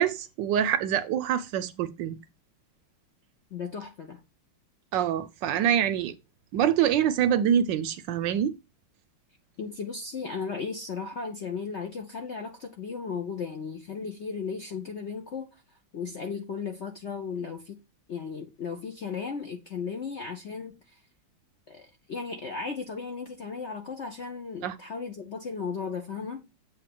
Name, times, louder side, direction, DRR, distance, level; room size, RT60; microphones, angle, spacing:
voice 1, 0.0-2.2 4.9-6.1 6.5-8.5 24.6-24.7, right 9 dB, 75° right, 1.2 m, -25 dB
voice 2, 3.5-4.2 9.6-15.5 15.9-17.8 18.1-21.0 21.7-26.5, left 5 dB, 55° left, 0.7 m, -35 dB
7.6 x 2.7 x 5.8 m
omnidirectional pair, 2.2 m